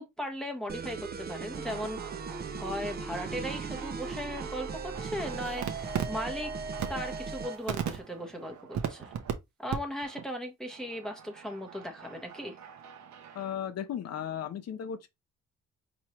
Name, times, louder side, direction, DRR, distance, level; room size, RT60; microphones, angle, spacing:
voice 1, 0.0-2.0 2.6-6.5 6.9-9.1 9.6-12.6, equal, ahead, 0.9 m, -37 dB
sound 1, 0.7-7.6, right 4 dB, 30° right, 0.6 m, -38 dB
sound 2, 1.5-9.3 9.7-9.8 10.0-10.3 10.7-13.6, right 8 dB, 65° right, 0.9 m, -40 dB
voice 2, 13.3-15.1, left 9 dB, 55° left, 0.8 m, -35 dB
4.4 x 3.0 x 3.0 m
cardioid pair, 90°, 30 cm